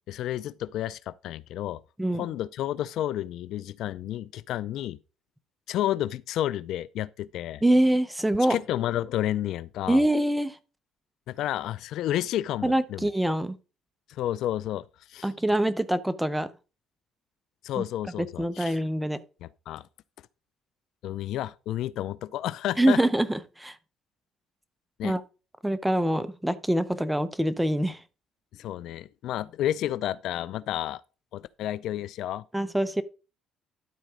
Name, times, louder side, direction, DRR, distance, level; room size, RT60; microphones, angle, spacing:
voice 1, 0.1-1.8 2.1-5.0 5.7-7.6 8.5-10.0 11.3-13.1 14.1-14.8 15.1-15.3 17.6-18.8 19.4-19.8 21.0-23.0 25.0-25.2 28.5-31.0 31.3-32.4, left 12 dB, 70° left, 0.4 m, -31 dB
voice 2, 7.6-8.6 9.9-10.6 12.6-13.6 15.2-16.5 17.8-17.9 18.2-19.2 22.8-23.8 25.0-25.2 25.6-28.0 32.5-33.0, right 1 dB, 5° right, 0.8 m, -24 dB
12.5 x 4.1 x 4.9 m
cardioid pair, 105°, 0 cm